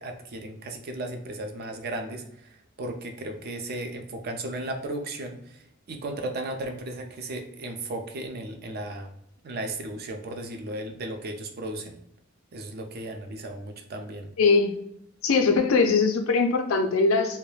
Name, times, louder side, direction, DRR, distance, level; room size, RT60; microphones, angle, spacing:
voice 1, 0.0-9.1 9.4-12.0 12.5-14.3, right 1 dB, 50° right, 5 dB, 0.4 m, -35 dB
voice 2, 14.4-14.7 15.2-17.4, left 4 dB, 80° left, 5 dB, 0.4 m, -21 dB
2.2 x 2.1 x 3.1 m, 0.74 s
head